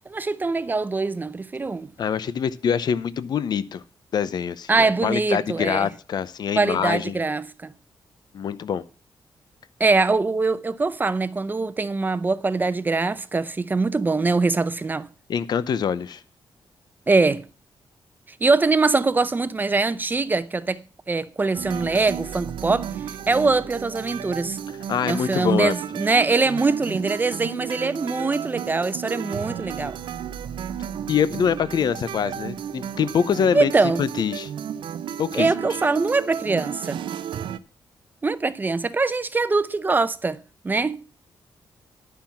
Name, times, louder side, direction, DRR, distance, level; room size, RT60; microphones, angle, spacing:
voice 1, 0.1-1.9 4.7-5.9 6.6-7.7 9.8-15.1 17.1-17.4 18.4-22.9 23.3-24.6 25.1-30.0 33.5-34.0 35.3-37.0 38.2-40.4 40.6-41.0, right 3 dB, 25° right, 0.6 m, -23 dB
voice 2, 2.0-3.8 4.1-7.2 8.3-8.8 15.3-16.2 24.9-25.7 31.1-33.7 34.0-34.5 35.2-35.5, left 7 dB, 60° left, 0.7 m, -24 dB
sound 1, 21.5-37.6, right 9 dB, 85° right, 0.7 m, -33 dB
11.0 x 5.9 x 7.2 m
wide cardioid pair, 135°, 8 cm